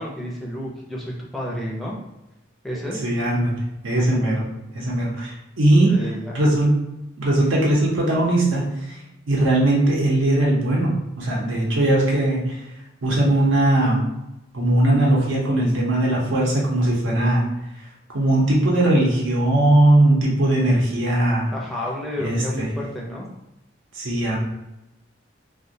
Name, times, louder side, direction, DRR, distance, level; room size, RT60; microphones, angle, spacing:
voice 1, 0.0-2.0 2.6-3.0 5.8-6.4 21.5-23.3, equal, ahead, -4 dB, 0.4 m, -30 dB
voice 2, 3.0-3.6 3.8-4.5 4.7-6.0 6.3-6.8 7.2-9.0 9.3-10.9 11.2-12.6 13.0-14.1 14.5-17.4 18.1-21.5 22.2-22.7 23.9-24.4, right 1 dB, 85° right, -3 dB, 0.7 m, -19 dB
2.2 x 2.1 x 2.6 m, 0.92 s
head